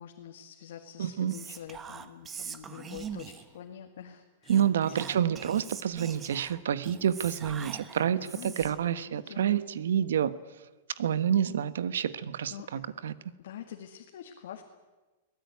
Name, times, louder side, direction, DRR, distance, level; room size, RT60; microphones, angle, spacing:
voice 1, 0.0-4.6 4.8-5.3 8.2-9.5 12.5-12.7 13.4-14.6, left 9 dB, 60° left, 3 dB, 2.1 m, -46 dB
voice 2, 1.0-1.3 4.5-10.3 11.0-13.1, right 9 dB, 85° right, 15 dB, 1.3 m, -28 dB
Whispering, 1.3-3.6 4.4-8.9, right 7 dB, 15° right, 1.0 m, -43 dB
23.5 x 18.0 x 9.5 m, 1.2 s
supercardioid pair, 175°, 0 cm